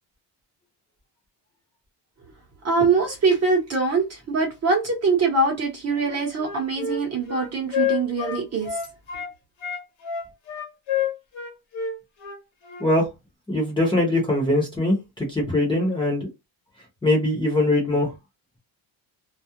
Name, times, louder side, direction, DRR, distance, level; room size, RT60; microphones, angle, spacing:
voice 1, 2.6-8.7, right 4 dB, 35° right, 0.8 m, -23 dB
Wind instrument woodwind instrument, 5.9-9.3 9.6-12.9, left 8 dB, 85° left, 0.9 m, -29 dB
voice 2, 13.5-16.3 17.0-18.1, left 1 dB, 10° left, 0.6 m, -22 dB
2.3 x 2.0 x 2.8 m
cardioid pair, 170°, 46 cm